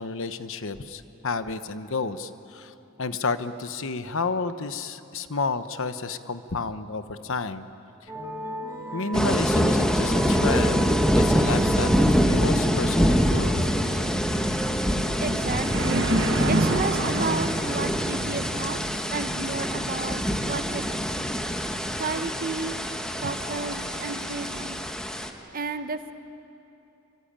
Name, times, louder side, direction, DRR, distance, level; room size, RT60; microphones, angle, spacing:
voice 1, 0.0-7.7 8.9-13.7, left 4 dB, 65° left, 11 dB, 1.1 m, -31 dB
sound 1, 8.1-15.7, right 1 dB, 15° right, 2.4 m, -37 dB
sound 2, 8.8-8.9 9.2-9.3 11.4-11.8 12.1-12.2 12.7-13.1 13.5-13.6 13.9-24.7, right 2 dB, 60° right, 1.4 m, -33 dB
sound 3, 9.1-25.3, equal, 5° left, 1.4 m, -24 dB
voice 2, 15.2-16.1 16.5-18.8 19.1-21.3 22.0-22.8 23.2-24.8 25.5-26.1, right 3 dB, 40° right, 9 dB, 1.1 m, -32 dB
25.5 x 24.5 x 9.0 m, 3.0 s
head